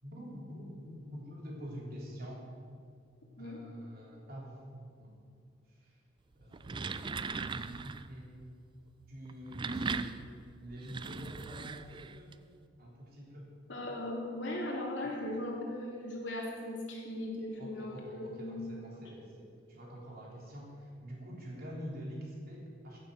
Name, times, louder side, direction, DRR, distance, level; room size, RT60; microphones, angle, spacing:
voice 1, 0.0-2.5 3.4-5.1 5.7-6.0 6.3-7.2 7.5-8.5 9.1-10.1 10.6-12.3 12.8-13.5 15.0-15.1 17.6-23.0, equal, 55° right, -4 dB, 3.5 m, -46 dB
sound 1, 6.4-8.1 9.3-12.3, right 4 dB, 25° right, 0.4 m, -39 dB
voice 2, 13.7-19.0, left 1 dB, 75° left, -2 dB, 2.9 m, -38 dB
15.0 x 7.2 x 6.6 m, 2.3 s
head